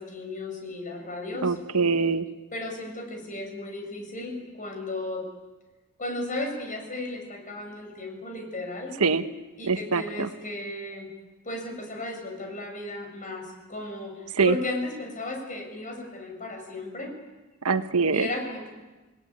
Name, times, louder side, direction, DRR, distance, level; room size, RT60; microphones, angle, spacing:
voice 1, 0.0-1.5 2.5-5.2 6.0-8.9 9.6-11.1 11.5-13.4 13.7-14.1 14.4-17.1 18.1-18.7, left 2 dB, 35° left, 3 dB, 7.0 m, -35 dB
voice 2, 1.4-2.3 9.0-9.2 9.6-10.3 14.3-14.6 17.6-18.3, right 4 dB, 80° right, 9 dB, 1.3 m, -23 dB
29.0 x 19.0 x 9.7 m, 1.2 s
head